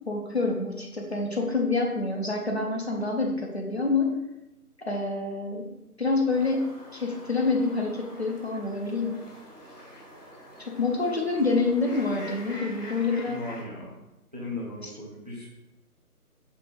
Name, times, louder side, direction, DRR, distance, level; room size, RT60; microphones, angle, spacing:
voice 1, 0.1-4.1 4.8-5.6 6.0-6.7 6.9-9.2 10.6-13.4, left 3 dB, 45° left, 1 dB, 0.5 m, -27 dB
sound 1, 6.3-13.6, equal, 80° left, 1.3 m, -45 dB
voice 2, 13.2-14.0 14.3-15.5, left 2 dB, 25° right, -4 dB, 0.6 m, -37 dB
5.3 x 2.7 x 3.0 m, 0.94 s
figure-of-eight pair, 150°, 46 cm